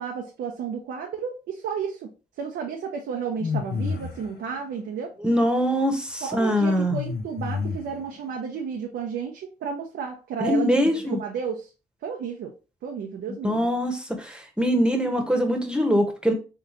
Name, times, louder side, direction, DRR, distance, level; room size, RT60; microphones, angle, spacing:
voice 1, 0.0-2.1 2.4-5.1 6.2-11.7 12.0-12.5 12.8-13.7, right 6 dB, 80° right, 2 dB, 0.6 m, -32 dB
sound 1, 3.4-4.3 6.9-8.1, left 5 dB, 70° left, 0.9 m, -29 dB
voice 2, 5.2-7.0 10.4-11.2 13.4-16.3, equal, 5° right, 4 dB, 1.1 m, -23 dB
3.6 x 3.6 x 3.0 m, 0.32 s
supercardioid pair, 55°, 17 cm